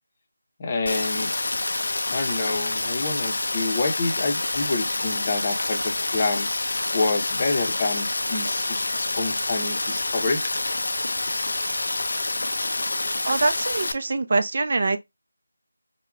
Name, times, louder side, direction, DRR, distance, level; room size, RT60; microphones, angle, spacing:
voice 1, 0.6-1.3 2.1-6.5 6.9-10.4, left 3 dB, 30° left, 0.7 m, -27 dB
Rain, 0.9-13.9, left 2 dB, 65° left, 0.4 m, -27 dB
voice 2, 13.3-15.0, right 3 dB, 50° right, 0.4 m, -23 dB
4.5 x 2.1 x 2.2 m
figure-of-eight pair, 170°, 0 cm